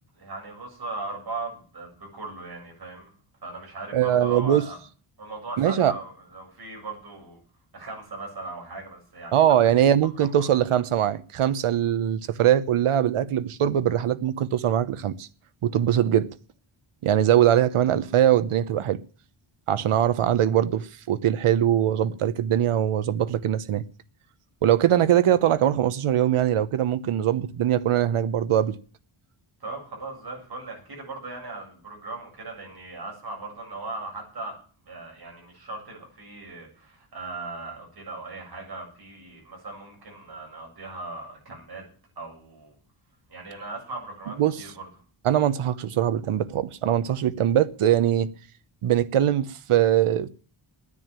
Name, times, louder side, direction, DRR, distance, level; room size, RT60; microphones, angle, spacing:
voice 1, 0.2-3.1 3.4-4.8 5.2-7.4 7.7-9.6 10.2-10.3 29.6-34.6 34.9-41.8 42.2-42.7 43.3-44.9, right 3 dB, 45° right, 7.5 m, -38 dB
voice 2, 3.9-4.6 5.6-5.9 9.3-15.3 15.6-16.3 17.0-19.0 19.7-23.8 24.6-28.8 44.4-44.6 45.2-48.3 48.8-50.3, right 10 dB, 90° right, 1.0 m, -22 dB
11.0 x 9.9 x 8.9 m
wide cardioid pair, 160°, 49 cm